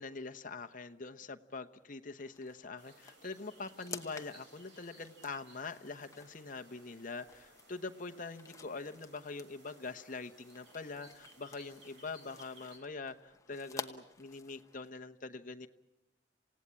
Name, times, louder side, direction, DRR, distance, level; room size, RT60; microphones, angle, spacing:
voice 1, 0.0-15.7, left 3 dB, 45° left, 7 dB, 1.0 m, -44 dB
sound 1, 2.2-14.9, left 4 dB, 15° left, 1.0 m, -52 dB
sound 2, 2.8-12.8, right 2 dB, 65° right, 4.1 m, -61 dB
28.0 x 17.0 x 8.8 m, 1.0 s
head